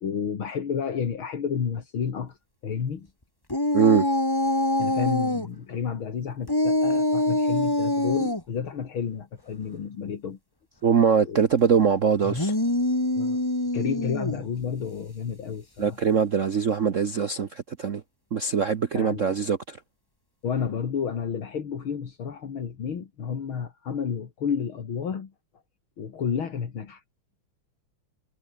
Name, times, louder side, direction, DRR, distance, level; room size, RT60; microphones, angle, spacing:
voice 1, 0.0-2.4 2.6-3.1 4.8-10.4 11.3-11.4 13.1-13.4 13.7-16.0 18.9-19.3 20.4-25.3 26.0-27.0, left 7 dB, 65° left, 3.0 m, -31 dB
sound 1, 3.5-5.5 6.5-8.4 12.2-14.5, left 1 dB, 10° left, 2.3 m, -24 dB
voice 2, 3.7-4.1 10.8-12.5 15.8-18.0 18.3-19.8, right 6 dB, 50° right, 1.0 m, -22 dB
omnidirectional pair, 2.4 m